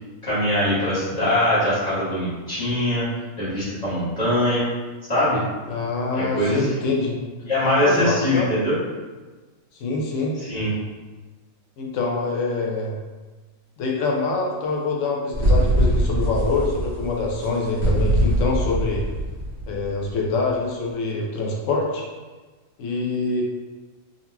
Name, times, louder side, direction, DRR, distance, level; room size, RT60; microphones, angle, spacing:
voice 1, 0.2-3.0 3.4-4.7 5.1-5.4 6.1-6.7 7.4-8.8 10.4-10.7, left 1 dB, 30° left, -11 dB, 1.3 m, -22 dB
voice 2, 5.7-7.1 7.8-8.5 9.7-10.3 11.8-13.0 13.8-19.0 19.7-22.1 22.8-23.4, left 3 dB, 65° left, -1 dB, 0.9 m, -25 dB
sound 1, 15.3-20.1, right 1 dB, 20° right, 1.5 m, -22 dB
3.9 x 2.9 x 2.2 m, 1.3 s
omnidirectional pair, 1.5 m